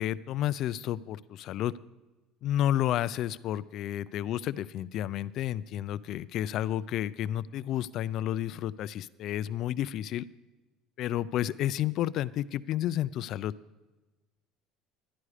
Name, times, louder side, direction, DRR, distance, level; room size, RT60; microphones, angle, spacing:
voice 1, 0.0-1.7 2.4-10.2 11.0-13.5, left 12 dB, 50° left, 17 dB, 0.3 m, -31 dB
11.5 x 10.5 x 4.9 m, 1.2 s
cardioid pair, 145°, 0 cm